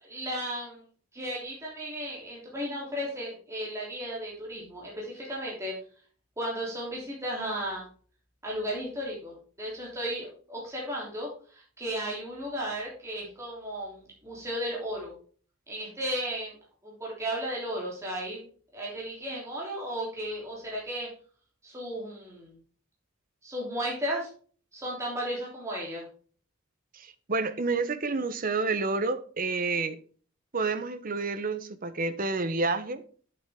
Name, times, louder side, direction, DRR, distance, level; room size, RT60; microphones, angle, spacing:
voice 1, 0.0-0.8 1.1-5.7 6.4-7.8 8.4-15.1 15.7-16.5 16.8-21.1 21.6-22.5 23.4-24.3 24.7-26.0, equal, 15° right, 3.2 m, -35 dB
voice 2, 26.9-30.0 30.5-33.0, right 3 dB, 45° right, 1.0 m, -29 dB
9.2 x 8.2 x 3.6 m
head